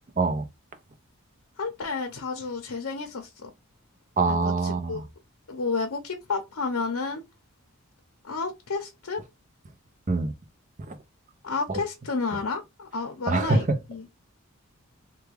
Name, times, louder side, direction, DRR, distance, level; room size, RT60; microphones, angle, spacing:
voice 1, 1.6-3.5 4.3-5.0 5.5-7.2 8.2-9.2 11.4-14.1, left 4 dB, 75° left, 0.7 m, -31 dB
voice 2, 4.2-5.0 10.1-10.3 10.8-10.9 11.7-11.8 13.3-13.8, right 3 dB, 35° right, 0.5 m, -24 dB
3.4 x 2.2 x 3.3 m
head